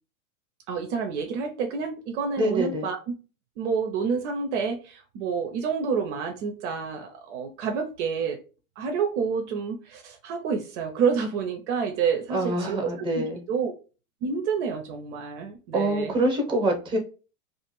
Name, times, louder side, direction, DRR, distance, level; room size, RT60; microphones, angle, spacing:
voice 1, 0.7-3.1 3.6-8.4 8.8-13.7 14.2-16.2, right 6 dB, 55° right, 0.6 m, -28 dB
voice 2, 2.4-2.9 12.3-13.4 15.7-17.0, right 1 dB, 10° right, 0.9 m, -25 dB
2.5 x 2.4 x 3.0 m
hypercardioid pair, 110°, 43 cm